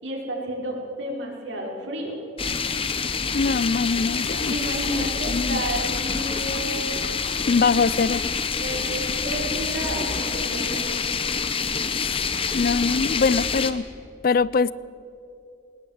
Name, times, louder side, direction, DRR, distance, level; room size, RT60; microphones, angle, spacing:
voice 1, 0.0-2.2 4.5-6.8 8.4-11.0, right 1 dB, 80° right, -1 dB, 4.7 m, -31 dB
sound 1, 2.4-13.7, left 5 dB, 30° left, 0.9 m, -27 dB
voice 2, 3.3-4.5 4.9-5.6 7.5-8.2 11.9-12.3 12.5-13.8 14.2-14.7, left 4 dB, 50° left, 19 dB, 0.4 m, -23 dB
19.5 x 19.5 x 7.9 m, 2.7 s
head